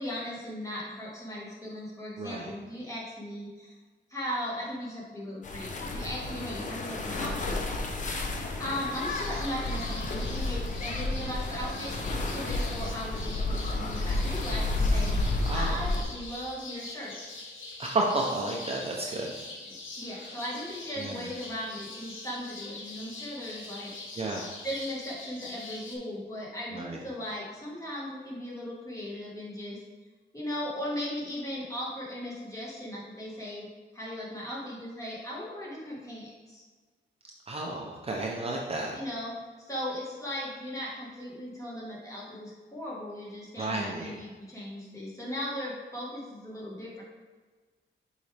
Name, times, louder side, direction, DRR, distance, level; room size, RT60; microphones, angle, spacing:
voice 1, 0.0-3.7 4.1-7.6 8.6-15.1 15.5-17.2 20.0-23.9 24.6-29.8 30.3-33.7 33.9-36.6 38.9-39.4 39.7-47.0, equal, 15° left, -4 dB, 1.5 m, -37 dB
voice 2, 2.2-2.5 15.4-15.8 17.8-19.3 21.0-21.3 24.2-24.4 26.7-27.0 37.5-39.0 43.6-44.1, right 2 dB, 30° right, -1 dB, 0.6 m, -32 dB
sound 1, 5.4-16.0, left 2 dB, 40° left, 0.7 m, -31 dB
sound 2, 8.9-26.0, left 3 dB, 80° left, 1.2 m, -43 dB
6.8 x 4.8 x 3.3 m, 1.4 s
wide cardioid pair, 140°, 20 cm